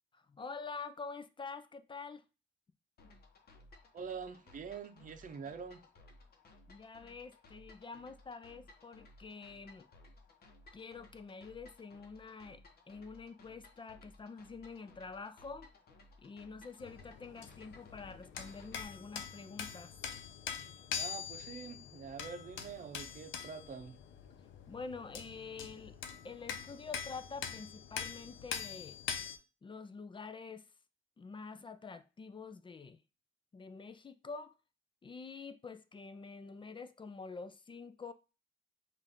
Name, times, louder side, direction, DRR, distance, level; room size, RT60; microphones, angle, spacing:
voice 1, 0.1-2.2 3.0-3.1 6.7-9.9 10.7-12.6 12.9-15.7 16.2-20.0 24.7-26.0 26.2-29.0 29.6-30.7 31.2-33.0 33.5-34.6 35.0-38.1, left 4 dB, 25° left, 0.4 m, -47 dB
sound 1, 3.0-18.8, left 2 dB, 50° left, 1.0 m, -60 dB
voice 2, 3.9-5.8 20.9-24.0, right 6 dB, 40° right, 0.7 m, -45 dB
sound 2, 16.8-29.4, left 8 dB, 80° left, 0.6 m, -44 dB
5.3 x 2.6 x 3.6 m
cardioid pair, 90°, 20 cm